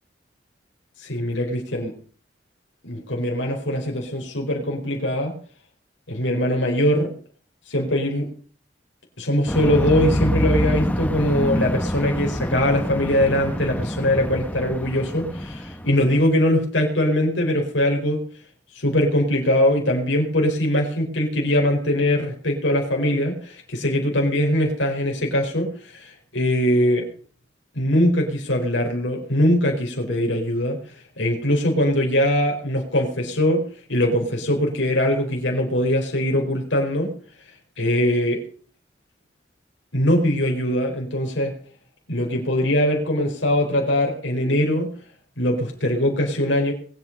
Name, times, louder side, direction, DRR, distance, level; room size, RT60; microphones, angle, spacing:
voice 1, 1.0-1.9 2.8-5.3 6.1-7.1 7.7-8.3 9.2-18.2 18.7-27.0 27.7-30.8 31.2-33.6 33.9-37.1 37.8-38.4 39.9-41.6 42.1-44.9 45.4-46.7, left 1 dB, 90° left, 0 dB, 4.8 m, -22 dB
sound 1, 9.5-16.3, equal, 10° left, 1.0 m, -26 dB
22.0 x 9.0 x 5.5 m, 0.43 s
head